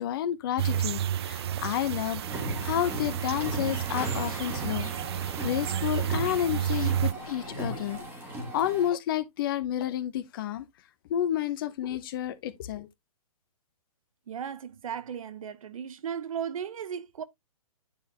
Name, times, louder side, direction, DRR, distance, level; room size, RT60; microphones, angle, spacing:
voice 1, 0.0-2.2 2.6-4.9 5.4-8.0 8.5-10.7 11.1-12.9, left 11 dB, 35° left, 0.8 m, -30 dB
sound 1, 0.6-7.1, right 10 dB, 45° right, 0.4 m, -31 dB
sound 2, 2.2-8.9, right 1 dB, 10° right, 2.0 m, -38 dB
sound 3, 3.1-8.1, left 5 dB, 75° left, 1.8 m, -48 dB
voice 2, 14.3-17.2, right 8 dB, 65° right, 0.8 m, -36 dB
9.4 x 4.1 x 2.9 m
hypercardioid pair, 150°, 19 cm